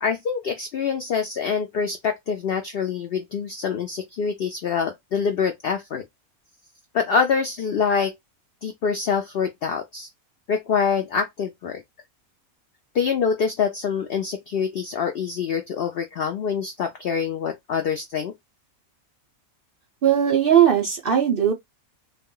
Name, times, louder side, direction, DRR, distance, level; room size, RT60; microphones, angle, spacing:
voice 1, 0.0-6.0 6.9-8.1 8.6-10.1 10.5-11.8 12.9-18.3, left 6 dB, 75° left, 0.5 m, -25 dB
voice 2, 20.0-21.5, right 9 dB, 55° right, 0.6 m, -18 dB
2.4 x 2.2 x 3.6 m
omnidirectional pair, 1.5 m